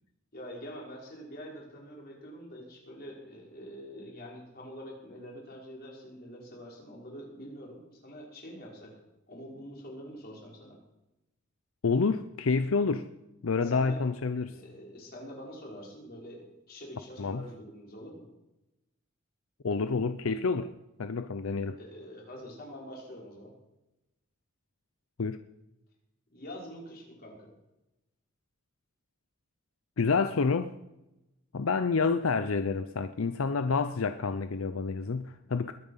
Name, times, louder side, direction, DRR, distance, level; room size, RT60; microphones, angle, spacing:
voice 1, 0.3-8.9 9.3-10.8 13.6-14.0 14.5-18.3 21.8-23.5 26.3-27.5, equal, 50° left, 5.2 m, -45 dB
voice 2, 11.8-13.1 13.4-14.6 17.2-17.5 19.6-20.7 21.0-21.8 25.2-25.4 30.0-30.7 31.5-35.7, left 4 dB, 90° left, 0.6 m, -28 dB
21.5 x 8.9 x 5.7 m
head